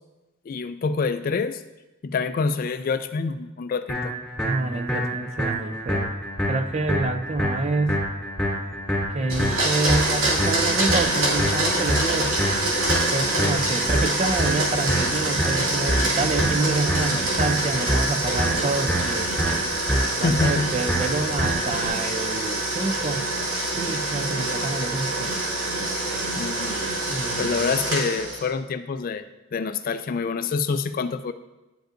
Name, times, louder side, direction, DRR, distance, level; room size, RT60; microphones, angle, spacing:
voice 1, 0.5-1.6 2.0-4.1 20.2-20.7 26.4-26.8 27.4-29.2 29.5-31.3, left 4 dB, 45° left, 11 dB, 0.3 m, -26 dB
sound 1, 3.9-21.9, right 1 dB, 5° left, 2.5 m, -27 dB
voice 2, 4.4-6.1 6.5-8.1 9.1-12.4 13.1-19.3 20.0-23.3 23.8-25.3 27.1-27.7, right 3 dB, 30° right, 8 dB, 0.4 m, -27 dB
Domestic sounds home sounds, 9.3-28.5, right 2 dB, 90° right, 2.2 m, -26 dB
10.0 x 5.2 x 2.5 m, 1.0 s
head